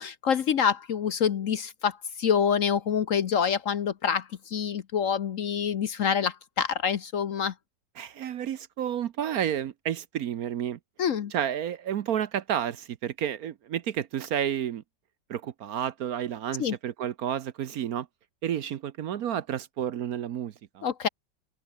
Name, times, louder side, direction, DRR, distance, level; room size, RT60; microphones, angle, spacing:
voice 1, 0.0-7.5 11.0-11.3 16.6-16.8 20.8-21.1, left 7 dB, 55° left, 1.1 m, -26 dB
voice 2, 8.0-10.8 11.3-14.8 15.3-18.1 18.4-20.8, right 10 dB, 65° right, 1.1 m, -31 dB
omnidirectional pair, 1.9 m